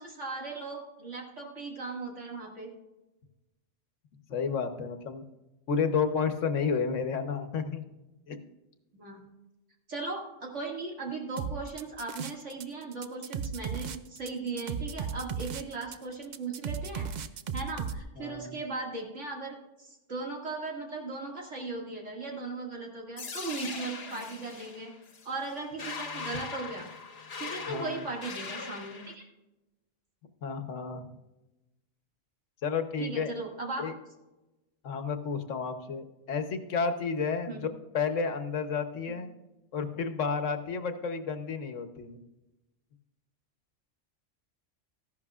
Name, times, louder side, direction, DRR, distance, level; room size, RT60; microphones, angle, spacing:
voice 1, 0.0-2.7 8.9-9.2 9.9-17.1 17.5-24.9 25.2-26.9 27.4-29.3 33.0-33.8 37.5-37.6 39.1-39.2, right 3 dB, 75° right, 0 dB, 2.5 m, -38 dB
voice 2, 4.3-5.2 5.7-7.8 8.3-8.4 18.2-18.6 27.7-28.0 30.4-31.1 32.6-33.3 33.8-33.9 34.8-37.6 37.9-39.3 39.7-42.2, left 5 dB, 85° left, 8 dB, 1.3 m, -31 dB
sound 1, 11.4-12.6 12.9-18.0, right 6 dB, 60° right, 0.5 m, -35 dB
sound 2, 23.2-29.1, left 5 dB, 55° left, 1.2 m, -40 dB
14.0 x 11.0 x 2.4 m, 1.0 s
omnidirectional pair, 1.3 m